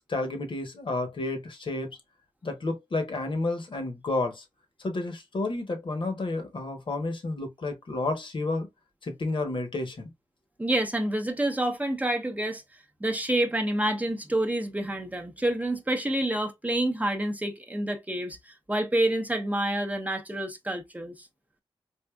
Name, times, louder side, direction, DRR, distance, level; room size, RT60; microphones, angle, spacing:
voice 1, 0.1-2.0 2.4-4.4 4.8-8.7 9.0-10.1, left 2 dB, 55° left, 1.0 m, -31 dB
voice 2, 10.6-12.6 13.0-21.3, right 1 dB, 15° right, 0.7 m, -28 dB
3.5 x 2.5 x 2.2 m
cardioid pair, 50°, 10 cm